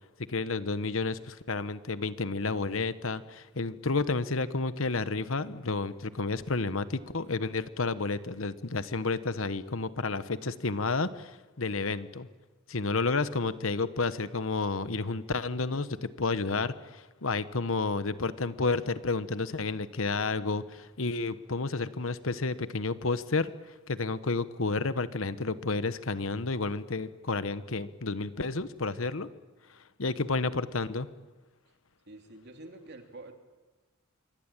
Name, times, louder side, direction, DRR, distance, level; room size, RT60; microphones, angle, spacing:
voice 1, 0.3-12.3 12.7-29.3 30.0-31.1, left 3 dB, 65° left, 13 dB, 1.2 m, -31 dB
voice 2, 30.0-30.4 32.1-33.3, right 2 dB, 50° right, 5 dB, 3.3 m, -48 dB
27.0 x 24.0 x 9.0 m, 1.2 s
head